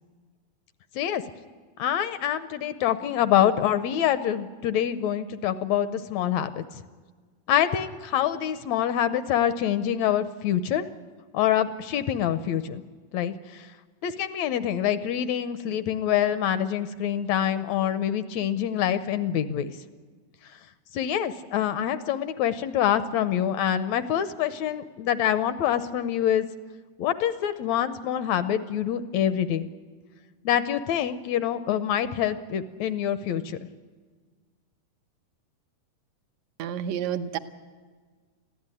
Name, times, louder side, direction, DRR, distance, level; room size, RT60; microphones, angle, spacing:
voice 1, 1.8-6.8 7.5-10.9 11.3-12.8 13.1-13.7 14.0-19.7 20.9-26.5 27.0-29.7 30.5-33.6, left 10 dB, 75° left, 12 dB, 1.8 m, -26 dB
voice 2, 36.6-37.4, right 9 dB, 70° right, 9 dB, 2.0 m, -29 dB
22.0 x 15.0 x 9.7 m, 1.5 s
omnidirectional pair, 3.6 m